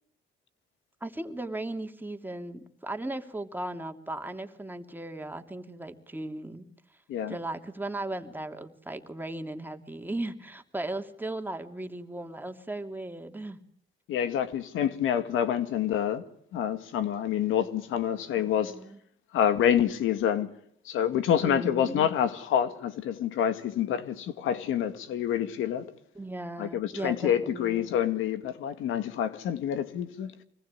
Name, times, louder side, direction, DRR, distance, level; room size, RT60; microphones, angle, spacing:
voice 1, 1.0-6.7 7.3-13.6 18.4-19.0 21.4-22.1 26.1-27.9, right 2 dB, 10° right, 2.8 m, -37 dB
voice 2, 14.1-16.2 16.5-18.7 19.3-20.5 20.9-25.9 26.6-30.3, left 9 dB, 85° left, 1.9 m, -27 dB
25.5 x 19.5 x 9.8 m
cardioid pair, 90°, 20 cm